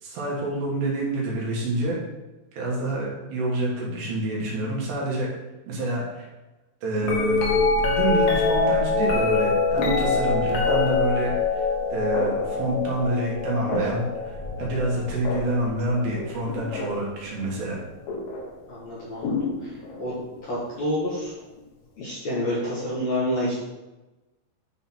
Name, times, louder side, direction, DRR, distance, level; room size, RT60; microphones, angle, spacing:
voice 1, 0.0-2.0 2.5-5.3 5.7-6.3 6.8-17.8, right 1 dB, 75° right, -4 dB, 3.9 m, -27 dB
sound 1, 7.0-17.1 18.1-18.5 19.2-20.2 22.0-22.1, left 3 dB, 80° left, 1.6 m, -25 dB
voice 2, 18.7-20.1 20.5-21.3 22.0-23.6, left 1 dB, 55° left, -8 dB, 2.1 m, -28 dB
10.0 x 4.0 x 4.3 m, 1.1 s
omnidirectional pair, 5.0 m